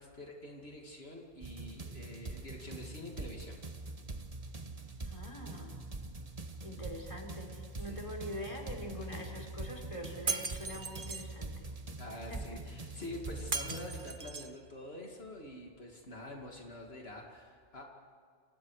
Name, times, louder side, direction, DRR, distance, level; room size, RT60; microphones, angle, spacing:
voice 1, 0.0-3.6 7.8-8.0 12.0-17.8, left 1 dB, 80° left, 0 dB, 2.7 m, -46 dB
sound 1, 1.4-14.1, right 3 dB, 35° right, 1.4 m, -44 dB
voice 2, 5.1-5.8 6.6-11.7 12.3-12.6, left 1 dB, 30° left, 2 dB, 4.2 m, -44 dB
Shatter, 10.3-11.3 13.5-14.6, right 4 dB, 55° right, 1.4 m, -37 dB
29.0 x 27.5 x 5.0 m, 2.2 s
omnidirectional pair, 1.0 m